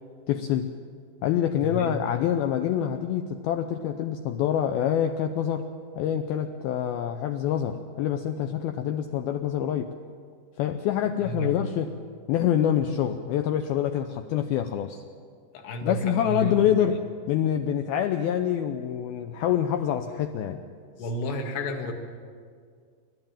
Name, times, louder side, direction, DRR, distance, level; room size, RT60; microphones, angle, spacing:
voice 1, 0.3-0.7 1.2-5.7 6.0-9.9 10.6-11.9 12.3-15.0 15.8-17.0 17.3-20.6, left 10 dB, 90° left, 7 dB, 2.1 m, -26 dB
voice 2, 1.6-2.1 11.2-11.6 15.5-16.8 21.0-21.9, equal, 70° left, 3 dB, 3.8 m, -31 dB
28.5 x 13.0 x 8.8 m, 2.1 s
omnidirectional pair, 5.4 m